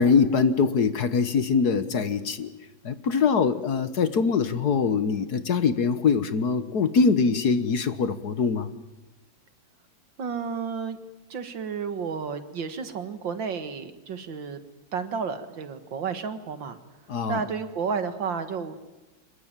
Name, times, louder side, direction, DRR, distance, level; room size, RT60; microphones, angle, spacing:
voice 1, 0.0-2.5 2.8-8.7 17.1-17.4, left 5 dB, 55° left, 12 dB, 1.7 m, -23 dB
voice 2, 10.2-11.0 11.3-14.6 14.9-16.8 17.3-19.0, right 6 dB, 70° right, 10 dB, 2.4 m, -31 dB
25.5 x 22.5 x 9.0 m, 1.1 s
omnidirectional pair, 2.1 m